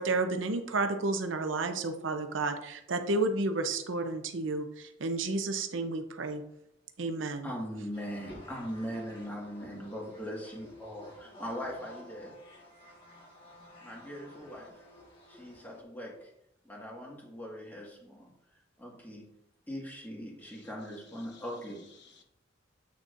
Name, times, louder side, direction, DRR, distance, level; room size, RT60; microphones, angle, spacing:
voice 1, 0.0-6.4 7.0-7.5, right 3 dB, 85° right, 7 dB, 0.7 m, -31 dB
voice 2, 7.4-12.3 13.8-14.8 15.3-16.3 16.6-18.3 18.8-19.3 19.7-21.8, equal, 10° left, -2 dB, 1.7 m, -40 dB
sound 1, 7.9-15.8, left 1 dB, 30° left, 1.6 m, -52 dB
voice 3, 20.4-22.2, left 5 dB, 65° left, 3 dB, 1.1 m, -59 dB
8.3 x 6.3 x 2.6 m, 0.79 s
head